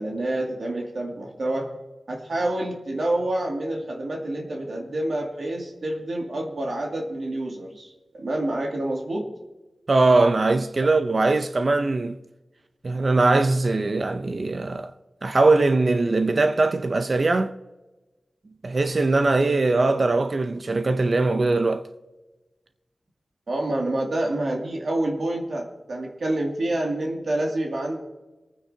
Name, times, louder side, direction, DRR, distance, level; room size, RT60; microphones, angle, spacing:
voice 1, 0.0-1.7 2.1-9.3 23.5-28.0, right 1 dB, 70° right, 2.3 m, -28 dB
voice 2, 9.9-12.2 12.8-14.9 15.2-17.5 18.6-21.8, right 3 dB, 50° right, 0.6 m, -21 dB
24.0 x 9.5 x 2.8 m
wide cardioid pair, 75°, 0 cm